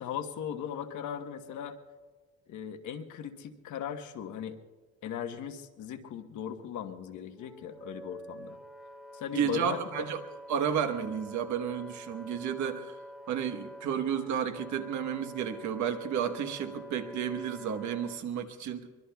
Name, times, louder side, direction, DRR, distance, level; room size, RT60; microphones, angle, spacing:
voice 1, 0.0-1.8 2.5-4.6 5.0-8.6 9.1-10.1, left 8 dB, 70° left, 6 dB, 1.1 m, -38 dB
Wind instrument woodwind instrument, 7.4-18.2, right 1 dB, ahead, 0.6 m, -47 dB
voice 2, 9.3-10.2 10.5-13.0 13.3-18.9, right 8 dB, 65° right, 7 dB, 1.2 m, -32 dB
23.5 x 22.5 x 2.3 m, 1.4 s
cardioid pair, 145°, 31 cm